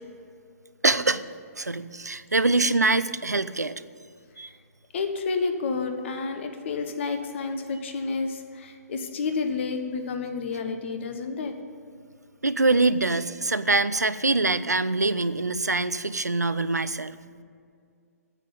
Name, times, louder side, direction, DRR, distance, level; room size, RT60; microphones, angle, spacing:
voice 1, 0.8-1.2 1.6-3.8 4.4-4.5 12.4-17.2, right 3 dB, 85° right, 14 dB, 0.5 m, -24 dB
voice 2, 4.9-11.5, left 4 dB, 45° left, 6 dB, 1.3 m, -30 dB
9.8 x 8.3 x 8.8 m, 2.3 s
figure-of-eight pair, 125°, 9 cm